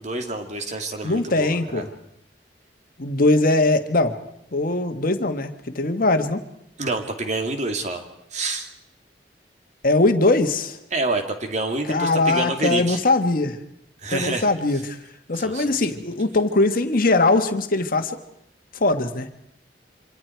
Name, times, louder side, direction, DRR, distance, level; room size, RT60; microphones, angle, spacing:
voice 1, 0.0-1.8 6.8-8.0 8.3-8.7 10.9-13.0 14.0-14.5 15.3-15.9, right 2 dB, 40° right, 5 dB, 2.6 m, -27 dB
voice 2, 1.0-1.9 3.0-4.2 4.5-6.4 9.8-10.8 11.9-13.6 14.1-15.0 15.3-18.2 18.8-19.3, left 2 dB, 55° left, 8 dB, 1.6 m, -21 dB
26.5 x 25.5 x 4.7 m, 0.78 s
head